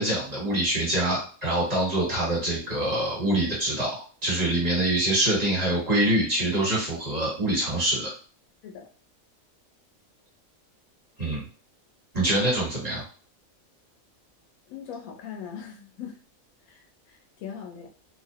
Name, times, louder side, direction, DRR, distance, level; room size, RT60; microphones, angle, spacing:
voice 1, 0.0-8.1 11.2-11.4 12.1-13.1, right 1 dB, 30° right, -6 dB, 1.3 m, -25 dB
voice 2, 14.7-16.2 16.7-17.9, left 8 dB, 90° left, 2 dB, 1.0 m, -40 dB
2.6 x 2.0 x 2.7 m, 0.38 s
omnidirectional pair, 1.4 m